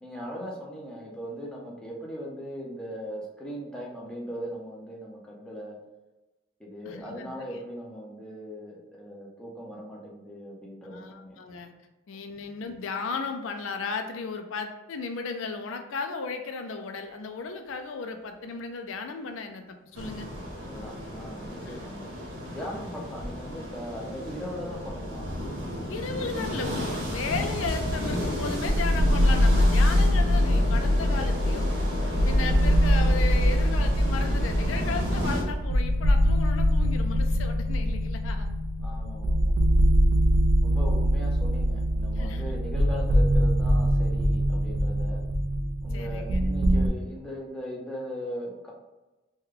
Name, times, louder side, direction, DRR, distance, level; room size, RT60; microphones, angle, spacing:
voice 1, 0.0-5.8 6.6-11.4 20.6-22.1 22.5-25.3 38.8-39.7 40.6-45.2 45.8-48.7, equal, 5° left, -3 dB, 0.6 m, -39 dB
voice 2, 6.8-7.6 10.8-11.7 12.1-20.3 21.6-21.8 22.6-22.7 25.9-31.7 32.0-38.5 42.1-42.6 45.9-46.4, left 4 dB, 85° left, 6 dB, 0.4 m, -35 dB
sound 1, 17.7-17.8 26.0-26.1 26.6-26.8 27.7-34.4 35.2-35.3, equal, 25° left, 1.1 m, -43 dB
sound 2, 19.9-35.4, equal, 65° right, 0.9 m, -33 dB
sound 3, 27.5-46.9, equal, 80° right, 0.4 m, -23 dB
3.2 x 2.2 x 3.6 m, 1.1 s
head